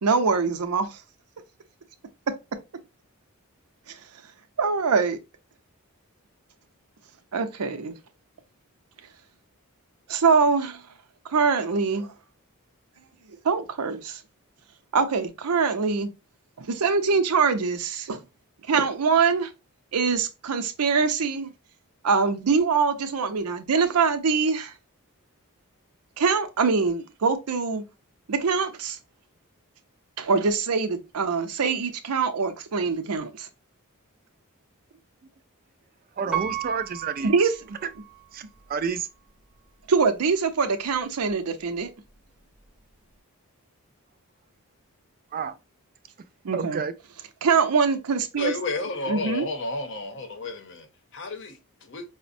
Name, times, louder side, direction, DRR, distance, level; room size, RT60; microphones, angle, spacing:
voice 1, 0.0-1.0 3.9-4.0 4.6-5.2 7.3-7.9 10.1-10.8 11.3-12.1 13.4-14.2 14.9-16.1 16.6-18.2 18.7-19.5 19.9-21.5 22.0-24.7 26.2-27.8 28.3-29.0 30.2-33.5 37.2-37.8 39.9-41.9 46.4-46.8 47.4-48.5 49.1-49.5, right 5 dB, 85° right, 0.6 m, -23 dB
voice 2, 36.2-37.5 37.8-37.9 38.3-38.4 38.7-39.1 45.3-45.5 46.5-46.9, right 6 dB, 40° right, 0.3 m, -29 dB
Piano, 36.3-38.3 38.9-39.0, right 10 dB, 5° right, 0.6 m, -34 dB
voice 3, 48.4-52.0, left 3 dB, 55° left, 0.7 m, -32 dB
4.9 x 2.1 x 2.5 m
head